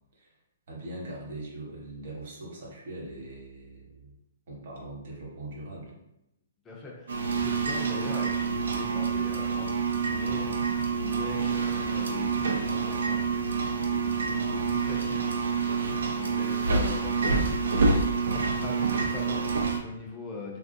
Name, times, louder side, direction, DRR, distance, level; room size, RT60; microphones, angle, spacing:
voice 1, 0.7-4.1 4.5-5.9, right 1 dB, 45° right, -3 dB, 1.0 m, -41 dB
voice 2, 6.6-10.7 11.0-13.3 13.9-15.4 16.1-17.4 18.3-20.6, left 3 dB, 10° left, -3 dB, 0.5 m, -41 dB
sound 1, 7.1-19.8, right 4 dB, 85° right, 0.5 m, -27 dB
3.4 x 2.4 x 2.6 m, 0.85 s
hypercardioid pair, 175°, 0 cm